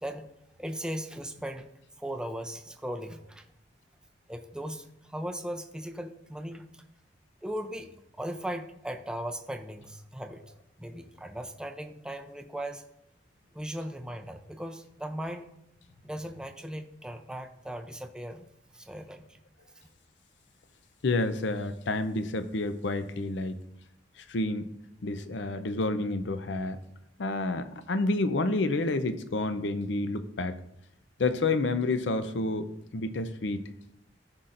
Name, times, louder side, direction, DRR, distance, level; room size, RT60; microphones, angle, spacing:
voice 1, 0.6-1.7 2.0-3.4 4.3-6.8 7.4-7.9 8.2-10.4 10.8-12.8 13.5-15.5 16.0-18.5 18.7-19.4, right 1 dB, 5° right, 5 dB, 0.5 m, -38 dB
voice 2, 21.0-23.6 24.2-24.7 25.0-26.8 27.2-30.5 31.2-32.7 32.9-33.6, left 2 dB, 75° left, 11 dB, 0.6 m, -29 dB
14.0 x 5.6 x 2.6 m, 0.81 s
head